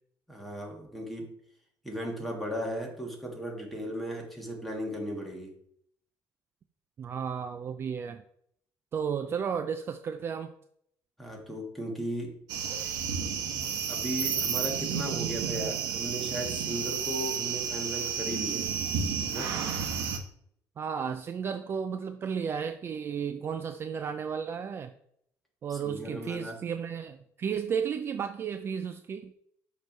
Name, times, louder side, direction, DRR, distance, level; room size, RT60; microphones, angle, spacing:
voice 1, 0.3-1.3 1.8-5.5 11.2-12.3 13.9-18.7 19.3-19.5 25.7-26.6, equal, ahead, 0 dB, 1.5 m, -36 dB
voice 2, 7.0-8.2 8.9-10.5 20.8-24.9 25.6-29.3, right 7 dB, 35° right, 8 dB, 0.4 m, -33 dB
sound 1, 12.5-20.2, right 7 dB, 90° right, 0.9 m, -31 dB
6.4 x 3.1 x 5.3 m, 0.69 s
cardioid pair, 130°, 7 cm